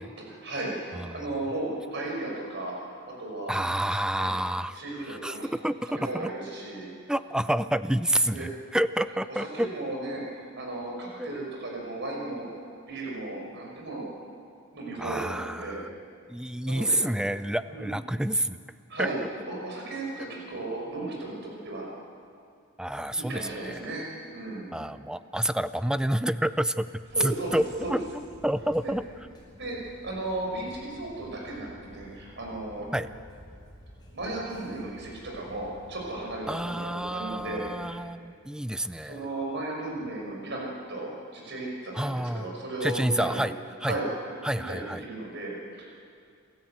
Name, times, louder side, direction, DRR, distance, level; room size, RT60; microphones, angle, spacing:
voice 1, 0.2-2.7 3.0-3.5 4.2-4.3 4.7-5.5 5.8-6.9 8.3-8.5 9.3-12.5 12.9-14.1 14.7-15.8 16.7-17.0 17.7-17.9 18.9-19.2 19.5-21.9 23.0-24.7 27.1-28.0 28.8-28.9 29.5-32.9 34.1-38.1 39.0-43.5 43.8-44.1 44.6-45.9, right 2 dB, 60° right, -1 dB, 5.8 m, -35 dB
voice 2, 0.9-1.3 3.5-4.8 5.1-6.3 7.1-9.7 11.2-11.3 15.0-15.9 16.3-18.6 19.0-19.1 22.8-23.9 24.7-28.0 28.4-29.0 32.9-33.1 36.5-39.2 41.9-42.5 42.8-43.5 43.8-43.9 44.4-45.0, right 1 dB, 5° right, 13 dB, 0.4 m, -29 dB
sound 1, 27.0-38.0, equal, 20° left, 5.2 m, -52 dB
27.5 x 13.0 x 8.0 m, 2.3 s
head